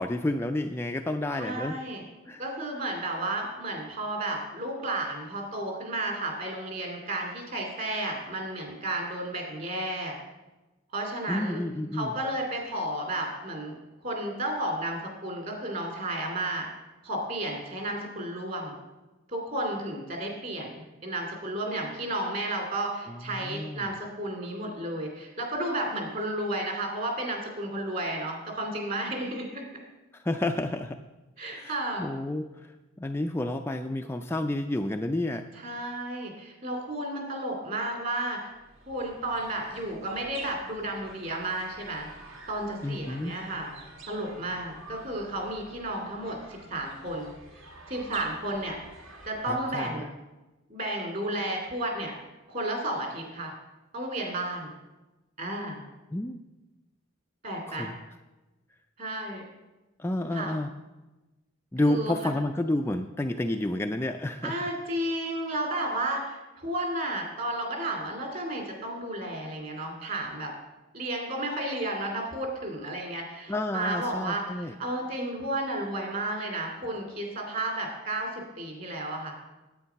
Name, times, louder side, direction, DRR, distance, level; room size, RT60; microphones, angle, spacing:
voice 1, 0.0-1.8 2.3-2.4 11.3-12.1 23.1-23.9 30.1-31.0 31.5-32.7 33.0-35.4 42.8-43.3 49.5-50.0 56.1-56.4 57.7-57.9 60.0-60.7 61.7-64.5 73.5-74.8, left 1 dB, 10° left, 5 dB, 0.3 m, -30 dB
voice 2, 1.3-2.0 2.4-10.1 10.9-11.6 11.9-13.7 14.0-16.7 17.0-18.7 19.3-20.7 21.0-29.6 31.4-32.1 35.6-38.5 38.9-42.1 42.5-43.7 44.1-47.3 47.9-48.8 49.3-50.1 50.7-52.1 52.5-53.5 53.9-54.7 55.4-55.8 57.4-57.9 59.0-59.4 60.3-60.6 61.9-62.1 64.4-70.5 70.9-79.3, right 1 dB, 40° right, 2 dB, 2.6 m, -32 dB
sound 1, 38.4-50.0, right 2 dB, 70° right, 1.8 m, -48 dB
9.7 x 8.7 x 5.7 m, 1.1 s
head